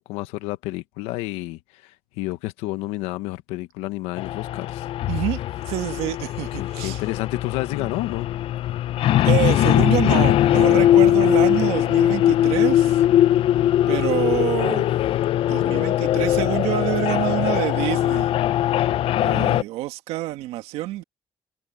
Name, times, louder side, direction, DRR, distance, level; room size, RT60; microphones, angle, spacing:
voice 1, 0.0-4.9 6.6-8.3 15.6-15.9, left 18 dB, 90° left, 1.2 m, -30 dB
sound 1, 4.2-19.6, left 12 dB, 65° left, 0.6 m, -20 dB
voice 2, 5.1-5.4 5.7-7.0 9.2-13.0 13.9-14.9 15.4-18.3 19.2-21.0, right 16 dB, 85° right, 1.9 m, -27 dB
supercardioid pair, 75°, 10 cm